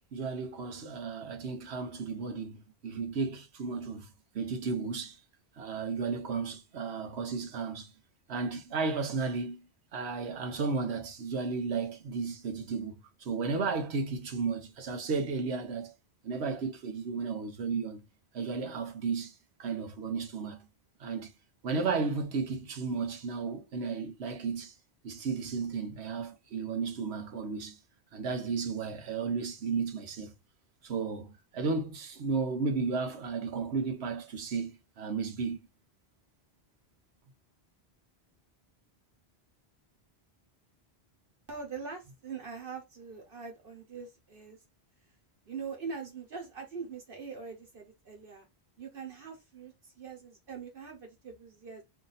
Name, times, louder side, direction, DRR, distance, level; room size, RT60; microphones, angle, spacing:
voice 1, 0.1-5.2 5.6-7.9 8.3-9.7 9.9-15.9 16.2-18.0 18.3-20.7 21.0-21.3 21.6-24.7 25.0-27.8 28.1-30.3 30.8-35.7, right 4 dB, 85° right, 1.1 m, -34 dB
voice 2, 41.5-44.6 45.4-48.5 48.8-51.8, right 5 dB, 60° right, 1.3 m, -43 dB
2.8 x 2.7 x 3.9 m
omnidirectional pair, 1.1 m